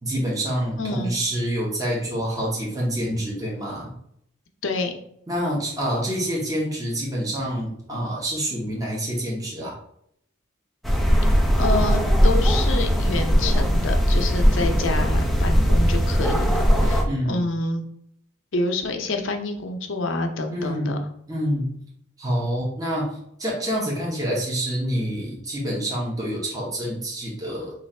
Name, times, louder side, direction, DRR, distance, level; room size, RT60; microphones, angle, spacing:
voice 1, 0.0-3.9 5.3-9.7 17.1-17.5 20.5-21.8 22.2-23.1 23.4-27.7, equal, 20° right, -4 dB, 1.0 m, -27 dB
voice 2, 0.8-1.1 4.6-4.9 11.6-17.8 18.5-21.0, left 2 dB, 65° left, 5 dB, 0.6 m, -28 dB
sound 1, 10.8-17.0, equal, ahead, 0.4 m, -19 dB
3.2 x 2.5 x 4.2 m, 0.70 s
head